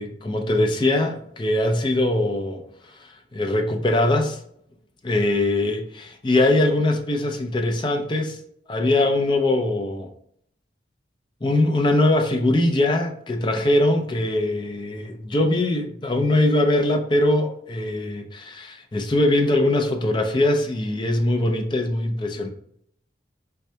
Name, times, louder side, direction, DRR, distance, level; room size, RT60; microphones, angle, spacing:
voice 1, 0.0-2.6 3.0-4.4 5.0-8.4 8.7-10.1 11.4-22.5, left 1 dB, 25° left, 4 dB, 0.4 m, -22 dB
4.3 x 2.2 x 2.7 m, 0.69 s
head